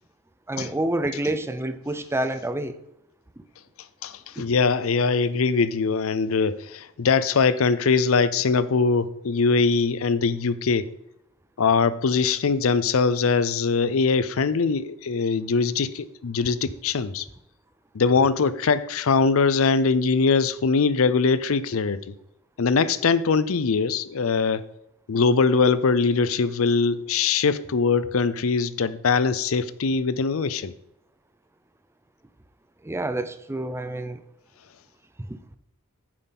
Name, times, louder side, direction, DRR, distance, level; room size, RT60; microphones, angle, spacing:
voice 1, 0.5-2.8 4.5-4.6 32.8-34.2 35.2-35.4, right 1 dB, 10° right, 11 dB, 0.5 m, -28 dB
voice 2, 4.0-10.9 11.6-17.3 17.9-22.1 22.6-24.6 25.1-30.7, left 4 dB, 70° left, 15 dB, 0.5 m, -22 dB
9.6 x 7.4 x 4.0 m, 0.81 s
head